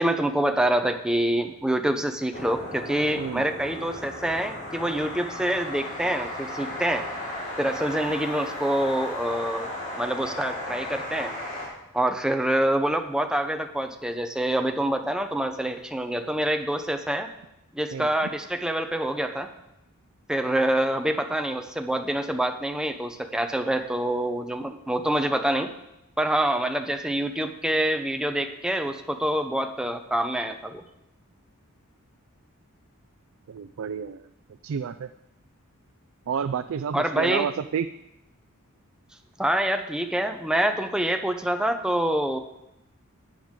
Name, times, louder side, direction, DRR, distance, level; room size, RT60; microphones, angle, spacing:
voice 1, 0.0-7.0 7.6-9.7 9.9-11.3 11.9-17.3 17.7-19.5 20.3-25.7 26.2-30.8 36.9-37.5 39.4-42.4, right 1 dB, 5° right, 6 dB, 0.7 m, -26 dB
sound 1, 2.3-11.7, left 1 dB, 40° left, 4.8 m, -35 dB
voice 2, 33.5-34.2 34.6-35.1 36.3-37.9, right 7 dB, 65° right, 11 dB, 0.4 m, -29 dB
13.5 x 9.1 x 3.7 m, 0.87 s
head